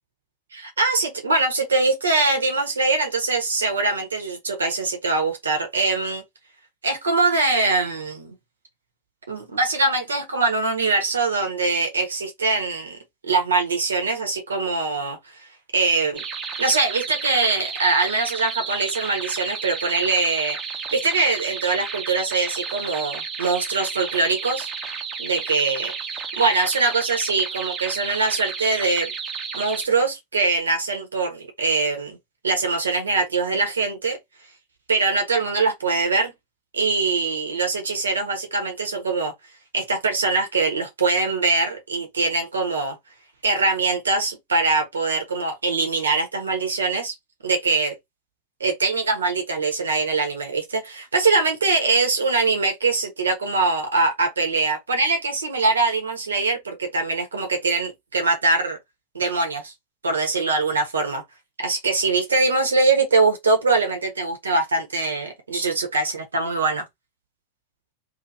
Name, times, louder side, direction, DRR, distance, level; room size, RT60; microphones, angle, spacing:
voice 1, 0.5-6.2 6.8-8.3 9.3-13.0 13.3-15.2 15.7-16.2 16.6-20.6 20.9-24.7 25.2-25.9 26.4-29.1 29.5-32.2 32.4-34.2 34.9-36.3 36.7-39.3 39.7-43.0 43.4-47.1 47.4-47.9 48.6-58.8 59.1-59.7 60.0-61.2 61.6-66.8, right 3 dB, 70° right, 1.1 m, -22 dB
sound 1, 16.2-29.9, right 6 dB, 25° right, 0.8 m, -32 dB
2.9 x 2.7 x 2.6 m
figure-of-eight pair, 90°, 0 cm